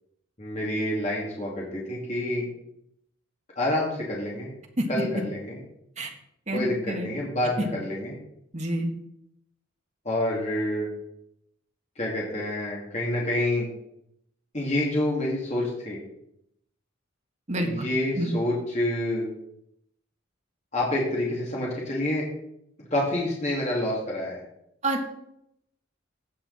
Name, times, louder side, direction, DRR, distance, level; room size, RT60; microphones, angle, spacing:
voice 1, 0.4-2.4 3.6-4.5 4.9-5.6 6.5-8.2 10.0-10.9 12.0-13.7 14.5-16.0 17.6-19.3 20.7-22.2 22.9-24.4, left 1 dB, 35° left, -4 dB, 2.6 m, -28 dB
voice 2, 6.5-7.1 8.5-8.9 17.5-17.9 18.2-18.3 24.8-25.1, right 1 dB, 35° right, 3 dB, 1.6 m, -28 dB
16.5 x 5.7 x 4.2 m, 0.75 s
head